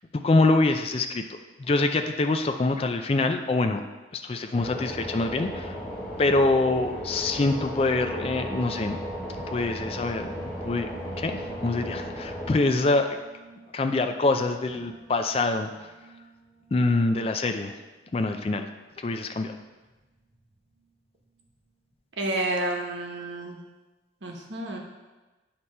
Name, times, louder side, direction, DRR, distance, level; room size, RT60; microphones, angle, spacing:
voice 1, 0.1-3.8 4.1-5.8 6.2-9.0 9.5-10.9 11.2-13.2 13.7-15.9 16.7-17.7 18.1-18.7 19.0-19.6, left 2 dB, 30° left, 6 dB, 0.3 m, -25 dB
sound 1, 4.5-12.6, equal, 10° left, 1.2 m, -35 dB
sound 2, 6.8-18.9 19.3-20.9 21.3-21.6 21.9-22.0, right 2 dB, 70° right, 1.5 m, -48 dB
voice 2, 22.2-23.6 24.2-24.8, right 2 dB, 90° right, 1 dB, 1.0 m, -30 dB
8.2 x 2.9 x 5.3 m, 1.2 s
head